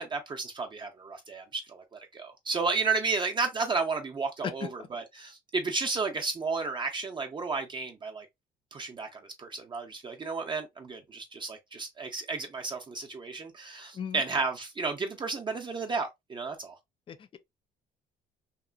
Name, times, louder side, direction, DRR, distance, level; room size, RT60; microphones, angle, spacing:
voice 1, 0.0-1.8 2.1-8.3 8.7-16.8, right 4 dB, 30° right, 0.5 m, -32 dB
voice 2, 17.1-17.4, left 7 dB, 30° left, 0.4 m, -36 dB
2.9 x 2.4 x 2.3 m
cardioid pair, 110°, 17 cm